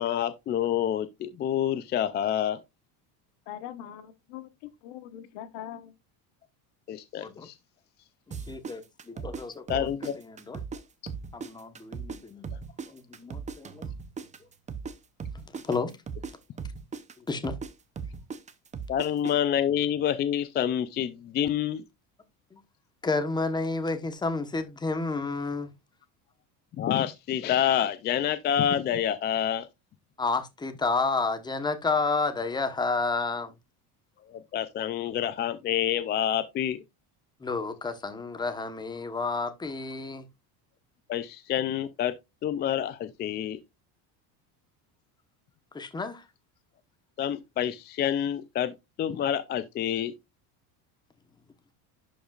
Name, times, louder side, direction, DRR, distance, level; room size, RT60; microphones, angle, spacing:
voice 1, 0.0-2.6 6.9-7.5 9.7-10.2 18.9-21.8 26.8-29.7 34.3-36.8 41.1-42.1 42.4-43.6 47.2-50.1, left 10 dB, 25° left, 0.3 m, -28 dB
voice 2, 3.5-5.9, left 11 dB, 70° left, 1.3 m, -42 dB
voice 3, 8.3-9.9 10.2-10.6 11.3-12.5 12.9-13.9 15.6-15.9 17.3-17.5 22.5-22.6 23.0-25.7 30.2-33.5 37.4-40.3 45.7-46.2, left 3 dB, 10° left, 1.0 m, -30 dB
sound 1, 8.3-10.8 11.1-14.9 15.2-19.3, right 5 dB, 15° right, 0.6 m, -38 dB
11.0 x 5.1 x 2.4 m
cardioid pair, 140°, 43 cm